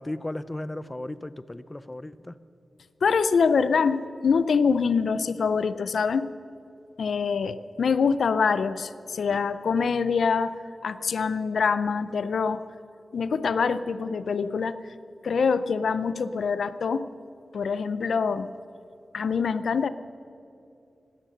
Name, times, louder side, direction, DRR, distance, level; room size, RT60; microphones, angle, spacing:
voice 1, 0.0-2.4, left 1 dB, 20° left, 16 dB, 0.5 m, -35 dB
voice 2, 3.0-6.3 7.0-10.6 10.8-12.6 13.1-14.8 15.2-17.1 17.5-18.5 19.1-19.9, left 5 dB, 90° left, 14 dB, 0.5 m, -25 dB
17.0 x 13.0 x 6.5 m, 2.7 s
wide cardioid pair, 85°, 0 cm